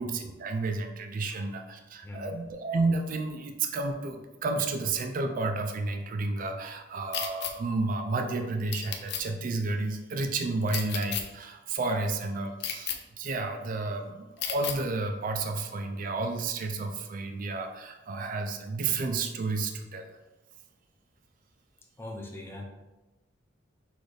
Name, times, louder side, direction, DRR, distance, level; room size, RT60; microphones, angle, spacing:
voice 1, 0.0-20.1, right 3 dB, 45° right, 5 dB, 0.4 m, -31 dB
sound 1, 7.1-7.5 8.7-9.2 10.7-11.2 12.6-13.0 14.4-14.8, left 8 dB, 60° left, 0.5 m, -32 dB
voice 2, 22.0-22.6, left 1 dB, 10° left, 1 dB, 0.6 m, -40 dB
6.2 x 2.5 x 3.3 m, 1.1 s
head